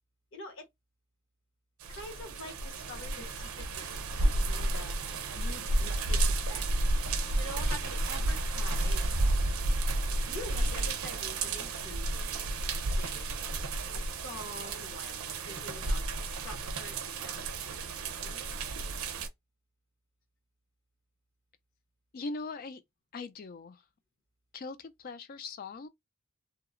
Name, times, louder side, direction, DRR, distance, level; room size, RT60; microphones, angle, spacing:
voice 1, 0.3-0.7 1.9-5.0 5.3-6.6 7.4-9.1 10.3-12.2 12.7-13.5 13.9-18.5, left 1 dB, 55° left, 0.9 m, -46 dB
sound 1, 1.8-19.3, right 2 dB, 70° right, 0.5 m, -31 dB
voice 2, 22.1-22.8 23.1-23.8 24.5-25.9, left 3 dB, 40° left, 0.3 m, -40 dB
2.8 x 2.0 x 2.4 m
head